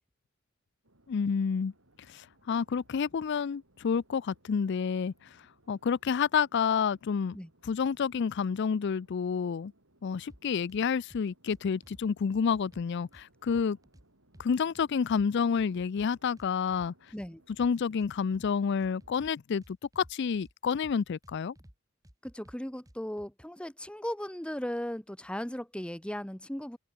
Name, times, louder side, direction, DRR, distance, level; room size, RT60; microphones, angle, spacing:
sound 1, 0.8-19.2, right 1 dB, 75° right, 6.3 m, -66 dB
voice 1, 1.1-1.7 2.1-5.1 5.7-7.4 7.6-9.7 10.0-13.8 14.4-16.9 17.6-19.6 20.0-21.5, left 6 dB, 55° left, 0.4 m, -29 dB
sound 2, 10.3-10.8 11.1-12.0 12.3-14.0 14.3-15.3 15.6-17.3 17.6-18.5 18.8-20.5 20.8-21.8 22.0-23.3, equal, 15° right, 2.5 m, -55 dB
voice 2, 22.2-26.8, equal, 5° left, 1.0 m, -37 dB
open air
head